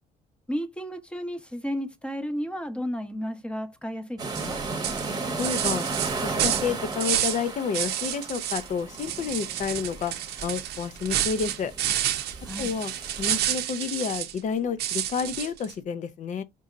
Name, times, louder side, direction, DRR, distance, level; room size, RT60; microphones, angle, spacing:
voice 1, 0.5-4.6 12.4-12.7, equal, 5° left, 0.8 m, -33 dB
sound 1, 4.2-13.4, right 3 dB, 25° right, 1.0 m, -35 dB
sound 2, 4.3-4.5 4.8-7.4 7.7-8.7 8.9-14.4 14.8-15.7, right 11 dB, 75° right, 0.7 m, -29 dB
voice 2, 5.4-5.8 6.2-10.1 10.4-11.7 12.6-12.9 13.2-16.4, left 6 dB, 45° left, 0.7 m, -30 dB
5.3 x 2.7 x 2.4 m
cardioid pair, 110°, 17 cm